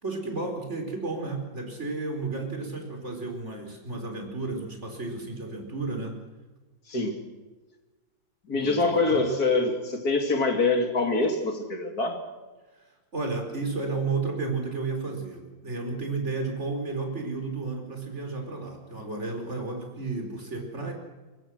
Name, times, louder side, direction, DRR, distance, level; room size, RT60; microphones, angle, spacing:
voice 1, 0.0-6.2 8.5-9.4 12.8-20.9, right 3 dB, 35° right, 3 dB, 4.5 m, -32 dB
voice 2, 6.9-7.2 8.5-12.2, left 3 dB, 50° left, 5 dB, 3.2 m, -25 dB
23.0 x 21.5 x 6.3 m, 1.2 s
omnidirectional pair, 2.1 m